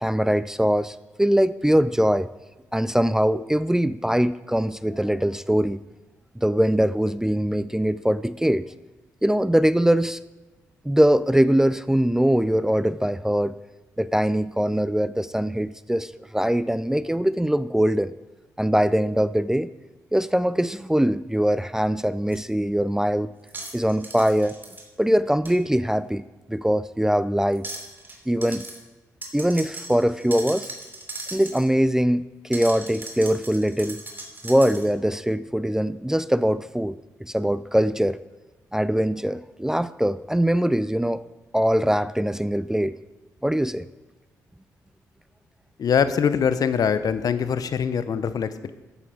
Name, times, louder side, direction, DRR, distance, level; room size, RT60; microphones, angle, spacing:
voice 1, 0.0-2.3 2.7-5.8 6.4-8.6 9.2-10.2 10.8-13.5 14.0-18.1 18.6-19.7 20.1-23.3 23.7-24.6 25.0-27.7 28.3-28.6 29.3-30.7 31.3-34.0 34.4-38.2 38.7-41.2 41.5-42.9 43.4-43.9, equal, 5° right, 16 dB, 0.4 m, -22 dB
sound 1, 22.3-22.4 23.5-24.8 25.5-25.6 27.5-28.2 28.4-28.8 29.2-31.7 32.5-34.9, right 2 dB, 30° right, 3.0 m, -38 dB
voice 2, 45.8-48.7, left 7 dB, 60° left, 13 dB, 0.7 m, -23 dB
11.0 x 8.5 x 4.8 m, 1.2 s
hypercardioid pair, 40°, 7 cm